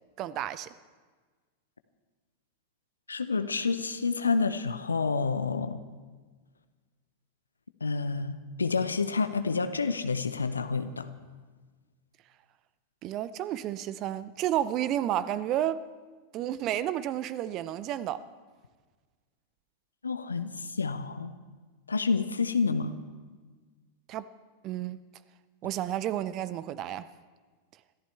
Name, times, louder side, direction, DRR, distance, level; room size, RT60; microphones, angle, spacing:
voice 1, 0.2-0.7 13.0-15.9 16.3-18.2 24.1-24.3 24.6-25.0 25.6-27.1, right 12 dB, 35° right, 0.5 m, -31 dB
voice 2, 3.1-5.8 7.8-11.1 20.0-21.3 21.9-22.9, left 4 dB, 75° left, 0.8 m, -29 dB
26.5 x 14.0 x 3.4 m
figure-of-eight pair, 90°, 0 cm